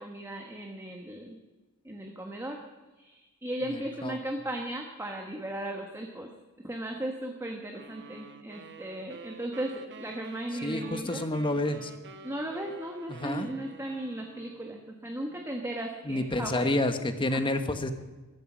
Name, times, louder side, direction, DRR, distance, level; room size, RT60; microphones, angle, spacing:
voice 1, 0.0-1.4 1.8-2.6 3.0-6.3 6.6-11.2 12.2-16.7 17.3-17.4, right 1 dB, 15° right, 2 dB, 1.4 m, -36 dB
voice 2, 3.6-4.2 10.6-11.9 13.1-13.5 16.0-17.9, left 1 dB, 25° left, 8 dB, 1.3 m, -29 dB
sound 1, 7.7-14.9, right 3 dB, 55° right, 1.2 m, -48 dB
15.0 x 13.5 x 6.2 m, 1.2 s
head